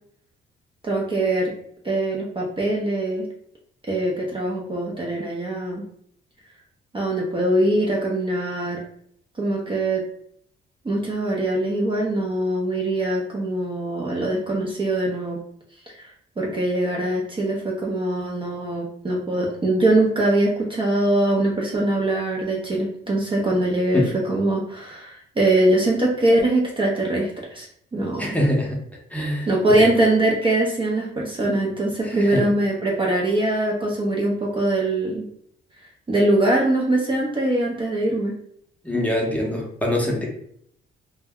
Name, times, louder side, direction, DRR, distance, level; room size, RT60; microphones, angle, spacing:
voice 1, 0.8-1.5 1.8-3.3 3.9-5.8 6.9-8.8 9.4-10.0 10.8-15.4 15.9-16.1 16.4-27.7 27.9-28.4 29.2-35.3 36.1-38.4, right 1 dB, 25° right, -2 dB, 0.6 m, -22 dB
voice 2, 28.2-28.8 29.1-29.5 29.8-29.9 32.0-32.4 38.8-40.2, left 1 dB, 5° left, -2 dB, 0.8 m, -24 dB
2.1 x 2.1 x 3.5 m, 0.67 s
cardioid pair, 90°, 20 cm